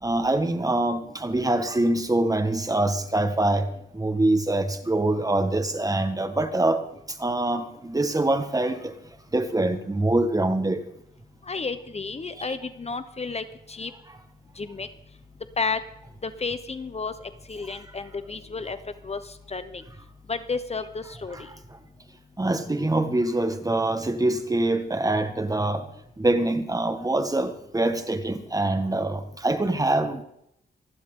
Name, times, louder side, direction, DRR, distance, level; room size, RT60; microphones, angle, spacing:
voice 1, 0.0-6.8 7.2-8.9 9.3-10.8 12.5-12.6 22.4-25.9 26.2-30.2, right 2 dB, 20° right, 1.7 m, -24 dB
voice 2, 11.5-13.9 14.6-14.9 15.6-15.8 16.2-17.1 17.5-18.8 19.0-19.2 19.5-19.8 20.3-21.5, left 4 dB, 40° left, 1.1 m, -31 dB
27.0 x 12.0 x 3.9 m
cardioid pair, 85°, 17 cm